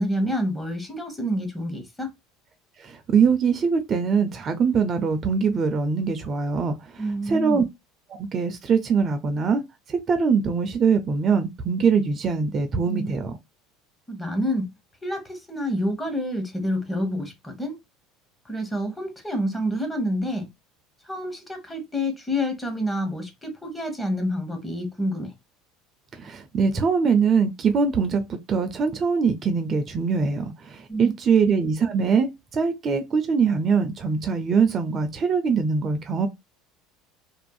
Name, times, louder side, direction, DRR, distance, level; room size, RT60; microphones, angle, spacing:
voice 1, 0.0-2.1 7.0-7.6 12.9-13.2 14.1-14.7 15.0-17.8 18.4-20.5 21.1-25.3 30.9-31.1, equal, 10° left, 1.1 m, -28 dB
voice 2, 2.8-7.0 7.3-7.6 8.2-9.6 9.9-13.4 26.1-36.3, right 5 dB, 40° right, 0.5 m, -22 dB
2.6 x 2.5 x 2.3 m
hypercardioid pair, 75°, 0 cm